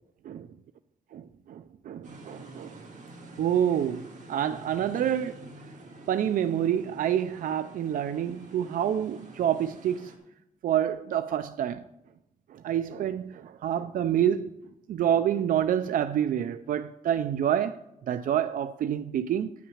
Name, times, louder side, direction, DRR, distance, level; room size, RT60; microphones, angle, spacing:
voice 1, 1.2-2.8 3.4-5.4 6.1-10.1 10.6-11.8 12.5-14.5 14.9-17.8 18.1-19.5, right 10 dB, 75° right, 0.4 m, -27 dB
sound 1, 2.0-10.2, right 2 dB, 60° right, 2.0 m, -47 dB
9.6 x 5.9 x 7.1 m
wide cardioid pair, 130°, 14 cm